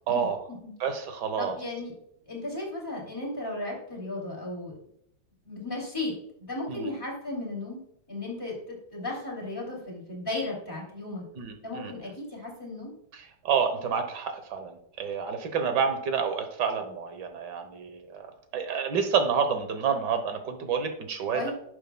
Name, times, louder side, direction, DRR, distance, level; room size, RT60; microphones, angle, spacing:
voice 1, 0.1-0.4 0.8-1.6 6.7-6.9 11.4-11.9 13.1-21.5, right 6 dB, 65° right, 7 dB, 1.7 m, -29 dB
voice 2, 1.4-1.9 2.3-4.7 5.5-6.1 6.4-7.8 8.1-11.2 11.6-12.9 21.3-21.5, left 2 dB, 10° left, -3 dB, 2.7 m, -35 dB
10.5 x 6.8 x 2.3 m, 0.72 s
omnidirectional pair, 2.1 m